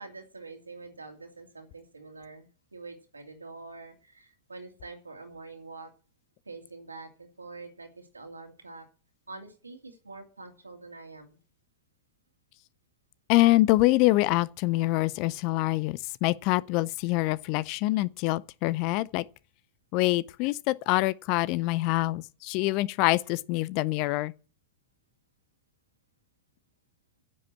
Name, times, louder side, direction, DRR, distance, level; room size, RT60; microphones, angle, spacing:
voice 1, 0.0-5.9 6.5-8.9 9.3-11.4, right 3 dB, 80° right, 2.6 m, -45 dB
voice 2, 13.3-19.2 19.9-24.3, left 19 dB, 45° left, 0.5 m, -25 dB
9.9 x 7.7 x 8.4 m
figure-of-eight pair, 90°, 0 cm